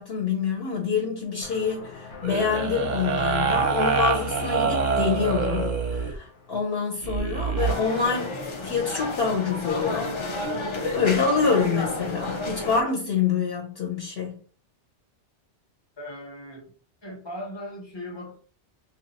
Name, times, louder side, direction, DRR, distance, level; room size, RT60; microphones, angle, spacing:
voice 1, 0.0-8.4 8.6-10.2 10.9-14.3, left 5 dB, 60° left, 0.9 m, -26 dB
sound 1, 1.4-8.1, left 5 dB, 85° left, 1.2 m, -45 dB
sound 2, 2.2-6.2 7.0-7.7, right 5 dB, 50° right, 0.6 m, -25 dB
sound 3, 7.6-12.8, left 2 dB, 45° left, 0.4 m, -31 dB
voice 2, 16.0-16.7 17.0-18.4, left 1 dB, 25° left, 0.9 m, -38 dB
2.9 x 2.4 x 4.0 m
omnidirectional pair, 1.2 m